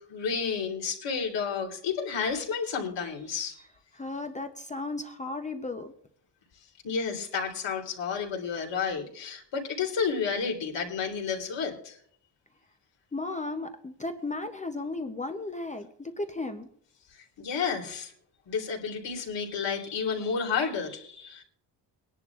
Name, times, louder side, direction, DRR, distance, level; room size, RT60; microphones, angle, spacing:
voice 1, 0.0-3.7 6.8-12.0 17.4-18.1 18.5-21.4, left 6 dB, 80° left, 1 dB, 3.5 m, -31 dB
voice 2, 3.9-5.9 13.1-16.7, left 2 dB, 15° left, 6 dB, 0.6 m, -35 dB
23.0 x 11.0 x 2.4 m, 0.62 s
wide cardioid pair, 175°, 43 cm